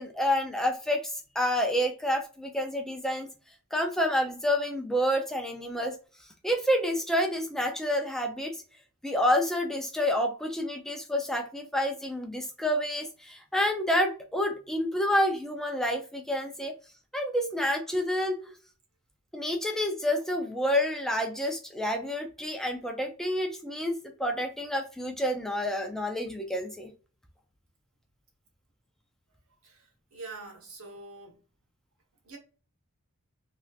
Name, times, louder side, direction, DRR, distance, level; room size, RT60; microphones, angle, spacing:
voice 1, 0.0-3.3 3.7-6.0 6.4-8.6 9.0-16.7 17.1-18.5 19.3-26.9, equal, ahead, 0.4 m, -29 dB
voice 2, 29.6-31.4 32.2-32.4, right 3 dB, 80° right, 1.0 m, -45 dB
3.1 x 2.8 x 2.3 m
head